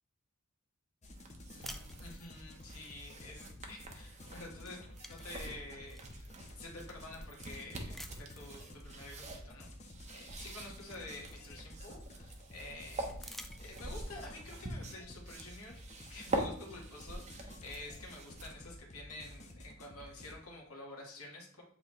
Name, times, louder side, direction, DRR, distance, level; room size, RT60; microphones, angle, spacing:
sound 1, 1.0-20.3, left 1 dB, 30° left, 0.8 m, -52 dB
sound 2, 1.0-18.8, right 2 dB, 30° right, 0.9 m, -45 dB
voice 1, 1.5-4.8 5.1-9.7 10.1-13.1 13.6-15.8 16.1-21.6, left 2 dB, 85° left, -1 dB, 1.6 m, -49 dB
sound 3, 1.6-2.6 4.0-4.3 4.6-6.2 6.8-6.9 7.9-8.5 10.0-10.1 10.5-12.0 13.1-14.2, left 1 dB, ahead, 0.3 m, -52 dB
7.9 x 4.1 x 3.2 m, 0.65 s
head